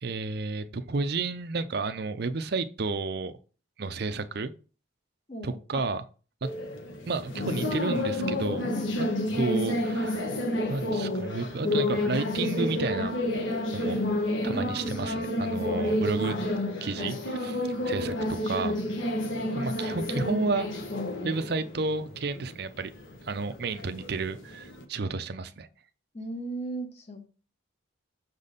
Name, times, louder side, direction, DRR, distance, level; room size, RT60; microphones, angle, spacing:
voice 1, 0.0-3.3 3.8-4.5 5.4-6.0 6.4-6.5 7.1-8.7 9.0-9.1 9.3-10.2 10.7-13.2 13.7-14.0 14.4-16.4 16.8-18.1 18.5-18.7 19.5-20.7 21.2-22.9 23.2-25.7, right 3 dB, 50° right, 0.5 m, -31 dB
voice 2, 5.3-5.8 7.4-7.6 8.7-9.2 14.4-15.2 26.1-27.3, right 2 dB, 30° left, 1.2 m, -38 dB
sound 1, 6.4-24.8, left 1 dB, 65° left, 1.3 m, -30 dB
6.4 x 4.1 x 5.1 m
head